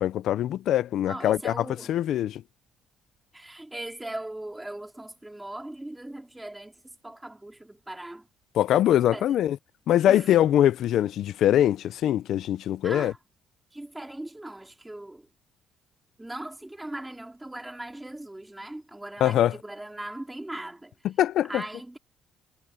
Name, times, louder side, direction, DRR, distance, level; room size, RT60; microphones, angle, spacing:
voice 1, 0.0-2.4 8.5-9.6 9.9-13.1 19.2-19.6 21.0-21.6, left 11 dB, 70° left, 0.5 m, -23 dB
voice 2, 1.1-2.0 3.3-8.3 9.1-9.4 10.1-10.3 12.8-13.2 13.7-15.3 16.2-20.9 21.5-22.0, right 1 dB, 10° right, 3.6 m, -39 dB
cardioid pair, 135°, 0 cm